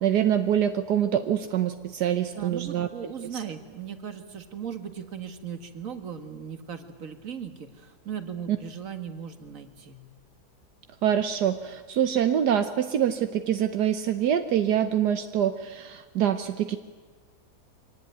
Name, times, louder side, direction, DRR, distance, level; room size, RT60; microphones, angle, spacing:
voice 1, 0.0-2.9 8.5-8.6 11.0-16.8, right 10 dB, 80° right, 9 dB, 1.5 m, -25 dB
voice 2, 2.3-10.0, right 7 dB, 55° right, 8 dB, 2.0 m, -38 dB
23.5 x 18.5 x 9.3 m, 1.5 s
omnidirectional pair, 1.7 m